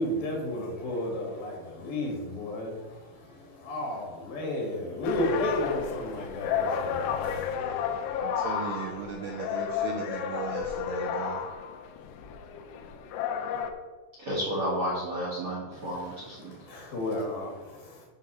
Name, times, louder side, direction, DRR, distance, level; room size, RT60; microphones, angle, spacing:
voice 1, 0.0-7.6 15.7-18.0, left 1 dB, 60° left, -1 dB, 3.2 m, -33 dB
sound 1, 5.0-13.7, left 7 dB, 80° left, 2.8 m, -32 dB
voice 2, 8.2-11.4, right 7 dB, 90° right, 4 dB, 2.2 m, -37 dB
voice 3, 14.2-16.6, equal, 55° right, -6 dB, 1.5 m, -31 dB
8.8 x 3.9 x 6.9 m, 1.3 s
omnidirectional pair, 5.2 m